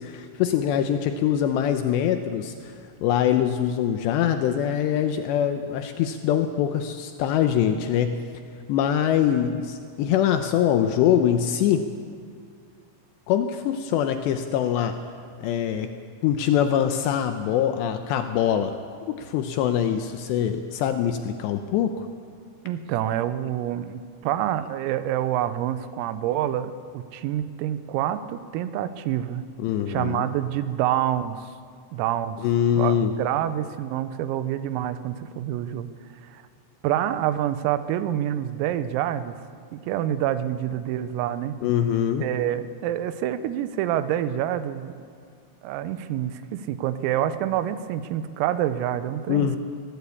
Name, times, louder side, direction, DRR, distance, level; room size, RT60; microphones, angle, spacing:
voice 1, 0.0-8.2 8.7-11.9 13.3-15.0 15.4-15.9 16.2-18.7 19.1-22.1 29.6-30.3 32.4-33.1 41.6-42.3 49.3-49.6, left 9 dB, 90° left, 7 dB, 2.5 m, -23 dB
voice 2, 22.7-29.4 29.9-31.5 31.9-32.4 32.8-35.9 36.2-36.4 36.8-39.4 39.7-41.6 42.2-45.0 45.6-49.6, right 11 dB, 90° right, 12 dB, 3.6 m, -27 dB
21.5 x 17.0 x 8.4 m, 2.2 s
omnidirectional pair, 5.9 m